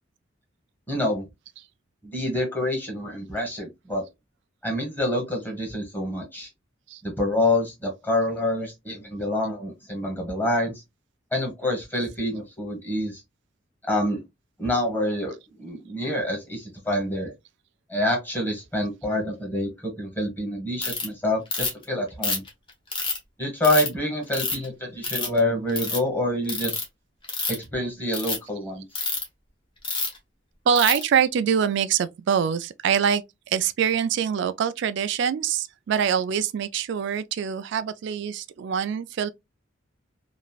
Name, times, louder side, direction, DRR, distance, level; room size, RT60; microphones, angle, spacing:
voice 1, 0.9-1.2 2.0-4.0 4.6-6.5 7.0-10.7 11.3-13.2 13.9-14.2 14.6-17.3 17.9-22.4 23.4-26.8 27.5-28.8, left 1 dB, 10° left, 1.2 m, -27 dB
Ratchet pawl, 20.8-21.1 21.5-21.8 22.2-23.2 23.6-23.9 24.3-24.7 25.0-25.4 25.7-26.0 26.5-26.8 27.2-27.6 28.1-28.4 29.0-29.2 29.8-30.2 30.8-31.0, left 4 dB, 25° left, 0.9 m, -27 dB
voice 2, 30.7-33.2 33.5-39.3, right 8 dB, 60° right, 0.3 m, -24 dB
3.0 x 2.4 x 2.3 m
head